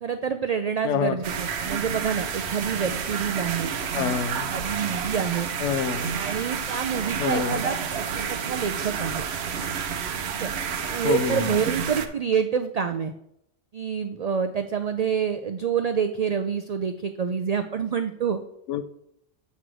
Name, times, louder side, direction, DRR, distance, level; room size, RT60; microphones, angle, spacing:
voice 1, 0.0-4.2 4.5-5.5 6.1-9.3 10.2-10.5 10.9-13.1 13.7-18.4, right 7 dB, 90° right, 8 dB, 0.3 m, -27 dB
voice 2, 0.8-1.2 3.9-4.5 5.6-6.1 7.2-7.6 11.0-11.6 18.7-18.8, left 7 dB, 85° left, 11 dB, 0.9 m, -26 dB
sound 1, 1.2-12.1, right 7 dB, 65° right, 0.9 m, -30 dB
7.9 x 3.2 x 6.1 m, 0.77 s
omnidirectional pair, 1.2 m